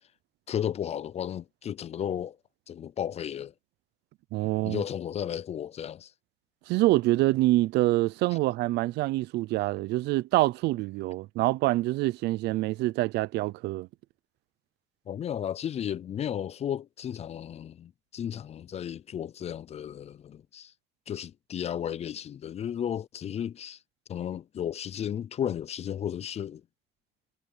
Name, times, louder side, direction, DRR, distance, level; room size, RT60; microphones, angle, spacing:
voice 1, 0.5-2.4 2.7-3.5 4.6-6.1 15.1-20.7 21.1-23.8 24.1-26.6, left 9 dB, 40° left, 0.4 m, -34 dB
voice 2, 4.3-4.8 6.7-13.9, right 18 dB, 85° right, 0.6 m, -26 dB
cardioid pair, 110°, 17 cm